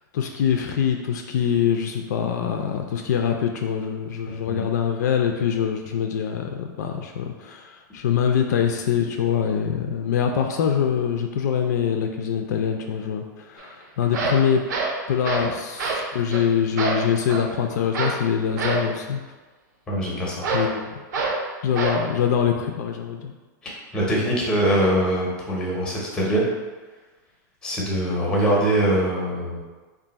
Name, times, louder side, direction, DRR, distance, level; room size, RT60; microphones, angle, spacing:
voice 1, 0.1-14.6 15.1-19.2 20.5-20.9 21.6-23.3, left 8 dB, 60° left, 4 dB, 0.4 m, -24 dB
voice 2, 4.3-4.6 19.9-20.5 23.6-26.5 27.6-29.6, right 1 dB, 10° left, -3 dB, 0.6 m, -23 dB
sound 1, 13.6-13.7 14.0-15.5 15.8-16.1 16.3-16.5 16.8-17.5 17.9-18.2 18.6-18.9 20.4-20.7 21.1-21.4 21.8-22.0, right 3 dB, 65° right, 0.7 m, -26 dB
3.5 x 2.5 x 4.0 m, 1.3 s
supercardioid pair, 175°, 10 cm